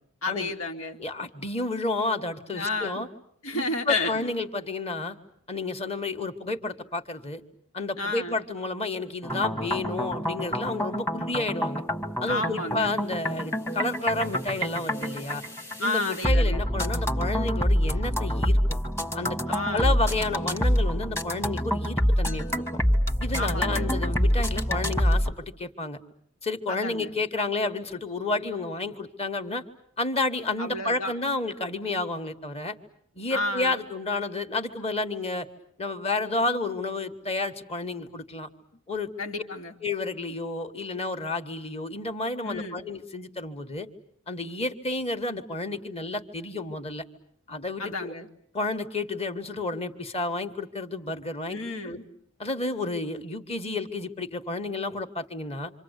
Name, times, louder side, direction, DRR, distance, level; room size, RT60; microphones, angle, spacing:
voice 1, 0.2-1.0 2.5-3.0 3.4-4.3 8.0-8.4 12.3-12.9 15.8-16.6 19.5-20.0 23.4-23.9 26.7-27.1 30.6-31.1 33.3-33.8 39.2-39.7 42.4-42.8 47.8-48.3 51.5-52.0, left 2 dB, 85° left, 3 dB, 2.7 m, -31 dB
voice 2, 1.0-3.1 3.5-5.1 5.5-7.4 7.7-11.8 12.2-15.4 15.8-18.6 19.1-19.4 19.7-22.6 23.2-26.0 26.4-29.6 30.0-32.7 33.1-35.5 35.8-38.5 38.9-39.1 39.8-43.9 44.3-47.0 47.5-48.1 48.5-52.0 52.4-55.7, left 2 dB, 30° left, 8 dB, 1.6 m, -31 dB
sound 1, 9.2-25.3, equal, 15° left, 1.5 m, -26 dB
27.0 x 26.5 x 8.2 m, 0.66 s
head